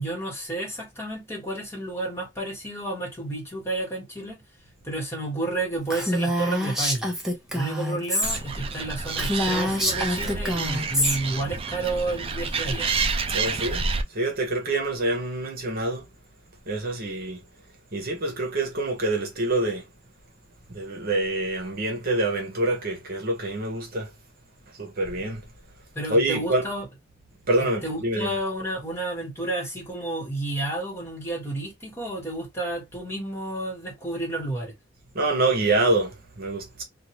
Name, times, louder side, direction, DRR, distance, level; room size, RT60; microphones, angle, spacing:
voice 1, 0.0-4.4 4.8-7.1 7.5-12.9 25.9-26.8 27.6-34.7, right 2 dB, 15° left, 1.6 m, -31 dB
Female speech woman speaking, 5.9-8.4 8.7-8.8 9.2-11.2, equal, 5° right, 0.8 m, -26 dB
Animal, 8.2-14.0, right 4 dB, 30° right, 0.4 m, -29 dB
voice 2, 13.3-16.1 16.7-17.4 17.9-19.9 20.7-24.1 24.7-25.5 26.1-26.7 27.5-28.4 35.1-36.8, right 2 dB, 55° right, 1.0 m, -26 dB
2.7 x 2.3 x 2.9 m
head